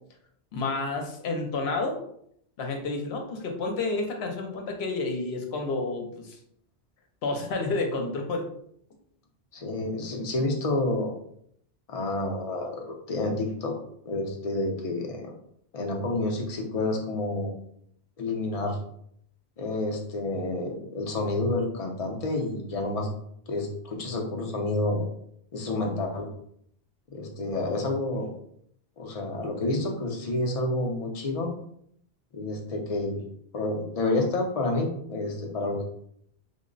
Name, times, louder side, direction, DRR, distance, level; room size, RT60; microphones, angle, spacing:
voice 1, 0.5-2.0 2.6-6.4 7.2-8.5, left 3 dB, 75° left, 3 dB, 0.9 m, -30 dB
voice 2, 9.5-11.1 11.9-13.7 14.0-15.3 15.7-17.5 18.2-18.8 19.6-23.1 23.5-25.0 25.5-26.3 27.1-28.3 29.0-31.5 32.3-33.2 33.5-35.8, left 2 dB, 40° left, 2 dB, 0.6 m, -29 dB
3.5 x 2.1 x 3.8 m, 0.69 s
omnidirectional pair, 1.1 m